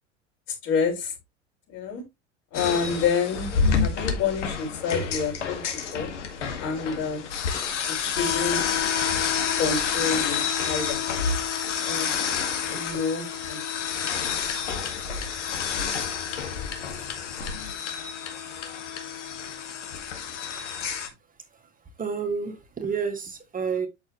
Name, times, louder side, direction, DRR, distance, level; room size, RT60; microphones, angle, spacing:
voice 1, 0.6-1.1 1.7-2.0 2.5-3.5 3.8-5.6 5.9-6.1 6.6-7.2 7.9-8.8 9.6-11.0 11.8-12.2 12.6-13.6 13.9-14.0, left 5 dB, 55° left, 5.0 m, -28 dB
sound 1, 2.5-21.1, left 7 dB, 70° left, 2.0 m, -29 dB
voice 2, 22.0-23.9, right 5 dB, 20° right, 1.7 m, -29 dB
8.3 x 6.3 x 3.1 m
figure-of-eight pair, 75°, 37 cm